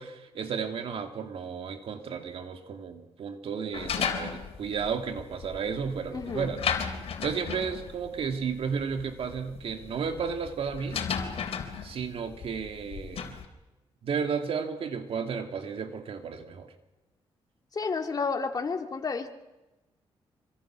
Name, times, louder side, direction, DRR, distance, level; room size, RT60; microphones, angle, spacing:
voice 1, 0.0-6.6 7.2-11.0 11.8-13.3 14.0-16.7, right 6 dB, 65° right, 6 dB, 2.5 m, -33 dB
sound 1, 3.7-13.5, left 7 dB, 70° left, 3.7 m, -35 dB
voice 2, 6.1-6.6 17.7-19.3, left 4 dB, 40° left, 4 dB, 2.6 m, -31 dB
26.0 x 25.0 x 6.3 m, 1.0 s
cardioid pair, 90°, 10 cm